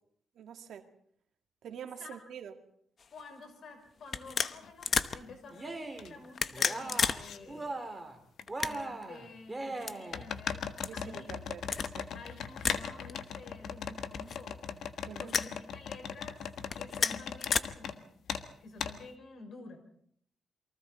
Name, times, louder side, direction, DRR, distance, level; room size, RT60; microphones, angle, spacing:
voice 1, 0.3-0.9 1.6-2.5 10.9-12.1 15.1-15.3, right 8 dB, 80° right, 6 dB, 2.0 m, -46 dB
sound 1, 3.0-3.2 4.1-5.2 6.2-7.2 7.5-7.6 8.4-9.0 9.8-9.9 10.8-10.9 11.6-11.9 12.6-12.8 13.1-13.2 14.1-14.7 15.3-15.5 16.6-17.6, left 5 dB, 45° left, 1.0 m, -31 dB
voice 2, 3.1-8.1 8.6-11.3 12.1-16.4 16.8-18.1 18.6-19.8, left 3 dB, 60° left, 6 dB, 5.8 m, -50 dB
sound 2, 4.6-4.7 5.3-6.1 6.3-7.4 8.4-8.5 10.1-18.0 18.3-18.5 18.8-19.0, left 7 dB, 80° left, 1.5 m, -39 dB
Cheering, 5.5-6.2 6.5-7.2 7.5-8.2 8.5-10.3, right 2 dB, 15° right, 3.2 m, -40 dB
28.5 x 23.5 x 4.2 m, 0.66 s
cardioid pair, 120°, 0 cm